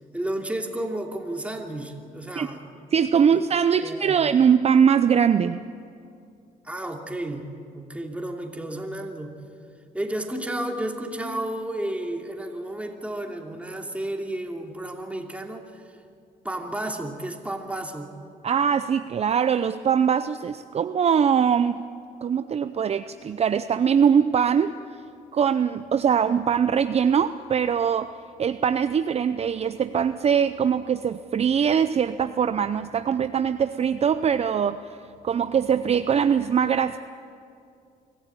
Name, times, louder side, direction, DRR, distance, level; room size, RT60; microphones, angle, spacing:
voice 1, 0.1-2.6 3.2-3.4 3.8-4.3 6.6-7.5 7.7-9.4 9.9-16.0 16.4-18.2, right 1 dB, 10° right, 2 dB, 2.8 m, -32 dB
voice 2, 2.9-5.6 18.4-21.8 22.2-24.7 25.3-28.1 28.4-37.0, right 7 dB, 45° right, 11 dB, 0.6 m, -22 dB
24.0 x 15.0 x 8.9 m, 2.4 s
cardioid pair, 90°, 15 cm